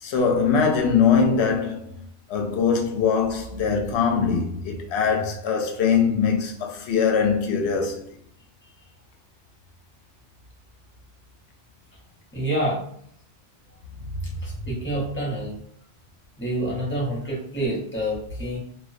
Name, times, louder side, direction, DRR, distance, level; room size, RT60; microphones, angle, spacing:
voice 1, 0.0-2.0 2.3-8.1, left 6 dB, 70° left, 0.8 m, -22 dB
voice 2, 12.3-12.8 14.4-15.5 16.4-18.6, right 1 dB, 10° left, 0.7 m, -27 dB
2.2 x 2.2 x 2.5 m
omnidirectional pair, 1.2 m